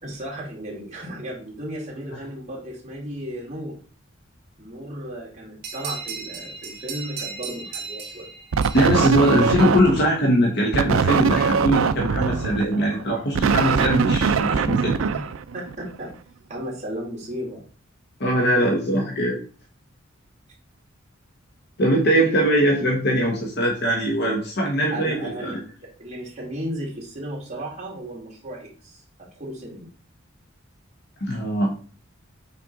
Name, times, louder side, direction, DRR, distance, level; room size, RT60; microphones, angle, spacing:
voice 1, 0.0-3.8 4.6-8.3 14.5-15.2 15.5-16.2 16.5-17.6 24.9-25.5 25.8-29.0 29.4-29.9, right 1 dB, 35° right, -4 dB, 2.5 m, -34 dB
sound 1, 5.6-9.9, right 5 dB, 55° right, 1.2 m, -36 dB
sound 2, 8.5-10.1 10.7-15.9, right 6 dB, 75° right, 0.4 m, -22 dB
voice 2, 8.7-14.9 18.2-19.4 21.8-25.6 31.2-31.7, equal, 55° left, 0 dB, 1.3 m, -21 dB
5.8 x 4.6 x 3.8 m, 0.40 s
head